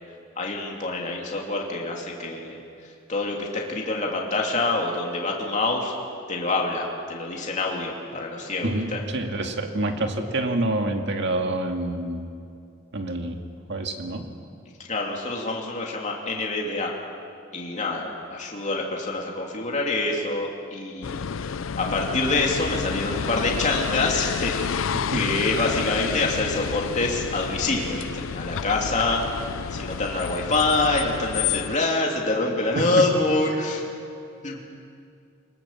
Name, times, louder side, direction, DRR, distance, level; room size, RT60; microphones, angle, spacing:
voice 1, 0.4-5.9 6.3-9.0 14.9-16.9 17.5-33.8 34.4-34.6, left 2 dB, 35° left, -1 dB, 2.7 m, -26 dB
voice 2, 8.6-12.3 12.9-14.3 24.9-25.3 32.8-33.1, right 1 dB, 60° right, 4 dB, 2.1 m, -27 dB
sound 1, 21.0-31.8, left 6 dB, 75° left, 0.5 m, -30 dB
26.0 x 19.5 x 7.3 m, 2.5 s
head